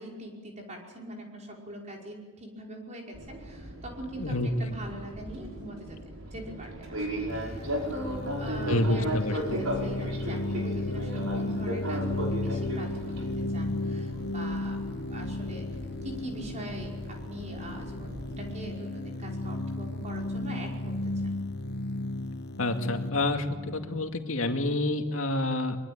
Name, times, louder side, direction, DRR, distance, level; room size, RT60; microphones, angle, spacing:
voice 1, 0.0-6.0 6.3-14.8 15.1-15.7 16.0-21.3, right 1 dB, 35° right, 0 dB, 5.3 m, -42 dB
Fixed-wing aircraft airplane, 3.1-18.5, right 1 dB, 80° right, 5.4 m, -37 dB
voice 2, 4.2-4.7 7.2-7.3 8.7-9.6 22.6-25.8, left 1 dB, 70° left, 5 dB, 2.3 m, -28 dB
sound 1, 7.3-24.9, left 2 dB, 50° left, 1.1 m, -34 dB
23.5 x 22.5 x 8.8 m, 1.4 s
head